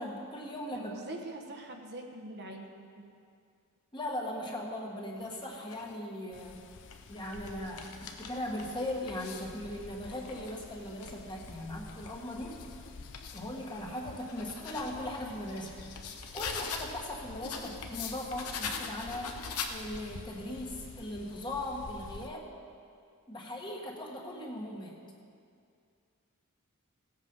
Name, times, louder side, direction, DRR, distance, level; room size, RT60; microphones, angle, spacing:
voice 1, 0.0-0.9 3.9-6.6 7.1-12.6 13.3-15.8 16.3-19.4 19.7-22.5 23.3-25.0, left 1 dB, 20° left, -1 dB, 1.5 m, -39 dB
voice 2, 0.7-3.1, right 1 dB, 50° right, 2 dB, 1.1 m, -44 dB
sound 1, 5.2-5.9 6.6-9.6 10.0-13.5 14.0-17.0 17.4-20.2, left 5 dB, 85° left, 1.0 m, -43 dB
sound 2, 6.3-22.3, left 4 dB, 55° left, 0.6 m, -50 dB
17.0 x 8.3 x 5.4 m, 2.3 s
head